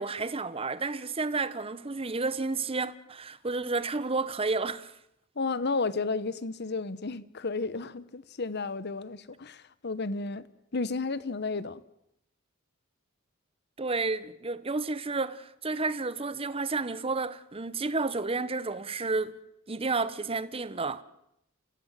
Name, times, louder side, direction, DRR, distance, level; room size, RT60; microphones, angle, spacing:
voice 1, 0.0-4.9 13.8-19.3 19.7-21.0, right 3 dB, 25° right, 0.9 m, -31 dB
voice 2, 5.4-10.5 10.7-11.8, left 3 dB, 55° left, 1.0 m, -32 dB
29.5 x 15.5 x 7.5 m
head